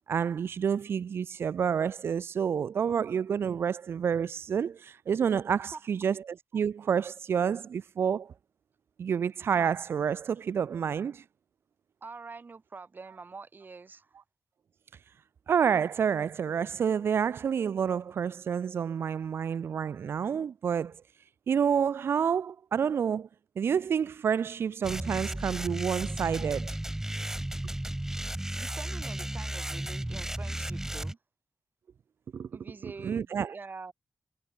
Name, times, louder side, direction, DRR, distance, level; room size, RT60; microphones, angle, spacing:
voice 1, 0.1-8.3 9.0-11.2 15.5-21.0 21.5-23.3 23.6-26.8 32.3-32.5 33.0-33.5, right 7 dB, 85° right, 1.0 m, -29 dB
voice 2, 12.0-14.2 28.5-31.2 32.5-33.9, right 4 dB, 55° right, 6.6 m, -45 dB
sound 1, 24.8-31.1, right 1 dB, 10° right, 1.1 m, -34 dB
cardioid pair, 65°, 4 cm